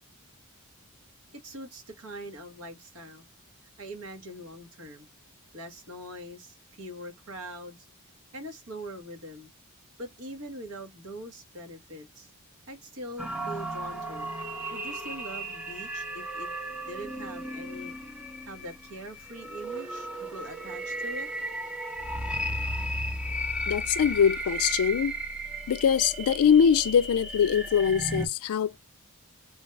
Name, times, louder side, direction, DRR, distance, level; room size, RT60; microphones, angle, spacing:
voice 1, 1.3-3.3 3.8-5.1 5.5-7.8 8.3-9.5 10.0-12.3 12.7-14.3 14.7-16.5 16.9-17.9 18.4-21.3, equal, 70° right, 1.2 m, -42 dB
sound 1, 13.2-28.3, right 1 dB, 5° right, 0.6 m, -35 dB
voice 2, 23.7-25.2 25.7-28.8, left 7 dB, 70° left, 0.3 m, -23 dB
3.3 x 2.2 x 3.1 m
head